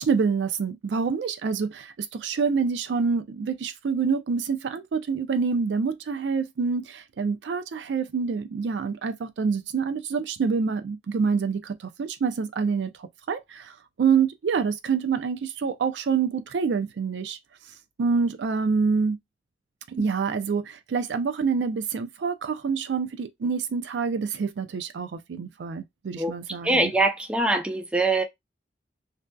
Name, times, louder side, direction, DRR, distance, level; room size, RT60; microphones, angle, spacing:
voice 1, 0.0-17.4 18.0-19.2 19.9-26.9, right 5 dB, 80° right, 0.4 m, -27 dB
voice 2, 26.6-28.2, right 2 dB, 5° right, 0.4 m, -23 dB
2.6 x 2.3 x 2.2 m
head